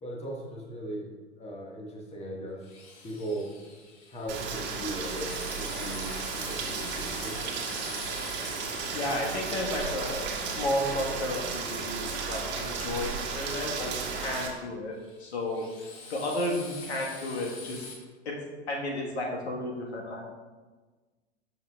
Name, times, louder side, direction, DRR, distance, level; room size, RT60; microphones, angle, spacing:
voice 1, 0.0-1.0 1.4-2.6 3.0-3.5 4.1-7.7, right 1 dB, 20° left, -1 dB, 1.5 m, -38 dB
Drill, 2.6-11.5 14.9-17.9, left 4 dB, 40° left, 1.5 m, -46 dB
Rain, 4.3-14.5, right 5 dB, 30° right, 1.5 m, -34 dB
voice 2, 8.9-15.7 16.1-17.8 18.2-18.4 18.7-20.2, left 1 dB, 70° left, -1 dB, 1.5 m, -33 dB
13.0 x 5.7 x 2.3 m, 1.3 s
figure-of-eight pair, 95°, 34 cm